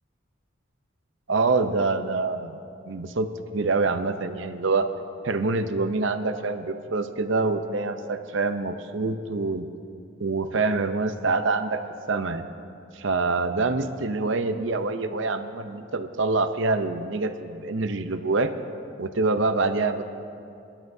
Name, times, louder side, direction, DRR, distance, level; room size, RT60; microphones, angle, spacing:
voice 1, 1.3-2.6 2.9-4.9 5.2-9.7 10.2-11.8 12.1-12.4 12.9-18.5 19.0-20.0, right 3 dB, 65° right, 9 dB, 0.7 m, -25 dB
26.5 x 12.0 x 2.7 m, 2.6 s
head